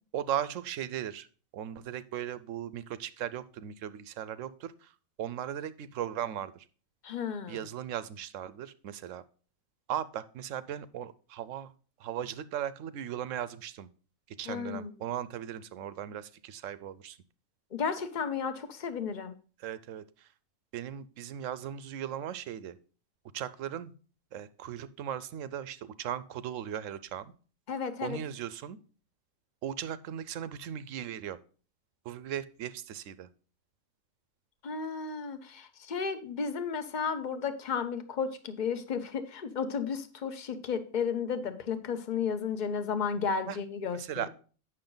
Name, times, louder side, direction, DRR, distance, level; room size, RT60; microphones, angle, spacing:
voice 1, 0.1-1.3 1.5-4.9 5.2-6.6 7.5-9.2 9.9-11.7 12.0-13.9 14.4-17.2 19.6-20.3 20.7-22.8 23.3-23.9 24.3-27.3 28.0-28.8 29.6-31.4 32.0-33.3 43.5-43.6 44.0-44.3, right 10 dB, 70° right, 15 dB, 0.9 m, -37 dB
voice 2, 7.0-7.7 14.5-14.9 17.7-19.3 27.7-28.2 34.6-44.3, left 6 dB, 40° left, 10 dB, 0.8 m, -33 dB
8.7 x 6.2 x 3.9 m, 0.39 s
omnidirectional pair, 1.4 m